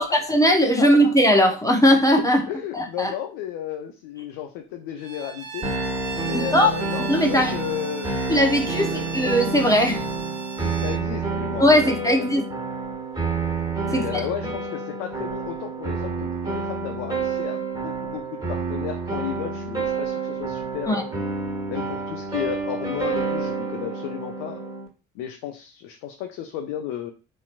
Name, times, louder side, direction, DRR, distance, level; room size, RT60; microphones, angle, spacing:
voice 1, 0.0-3.1 6.3-6.7 7.1-7.5 8.3-10.0 11.6-12.4 13.9-14.2 20.9-21.0, equal, 10° left, 2 dB, 0.8 m, -19 dB
voice 2, 0.7-1.1 2.5-5.7 6.2-8.1 8.6-9.2 10.6-12.3 13.8-21.1 21.7-24.6 25.1-27.1, left 10 dB, 60° left, 4 dB, 0.6 m, -33 dB
Bowed string instrument, 5.0-11.1, right 5 dB, 85° right, 0.6 m, -38 dB
sound 1, 5.6-24.9, right 4 dB, 10° right, 1.5 m, -29 dB
4.2 x 2.9 x 2.5 m, 0.33 s
figure-of-eight pair, 50°, 38 cm